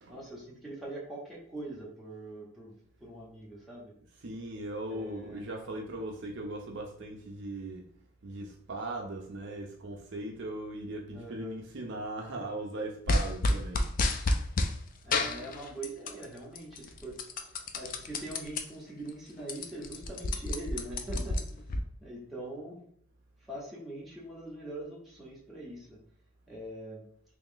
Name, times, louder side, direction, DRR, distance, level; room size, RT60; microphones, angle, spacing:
voice 1, 0.1-2.7 3.0-3.9 4.9-5.4 11.1-11.6 15.0-21.7 22.0-22.8 23.4-26.0 26.5-27.0, right 1 dB, ahead, -6 dB, 0.9 m, -43 dB
voice 2, 4.2-7.9 8.2-13.9, right 1 dB, 55° right, 1 dB, 0.5 m, -39 dB
sound 1, 13.1-14.7 15.1-16.2 16.6-18.6 19.1-19.2 19.4-21.8, left 2 dB, 40° left, 0.3 m, -30 dB
3.0 x 2.9 x 3.8 m, 0.64 s
head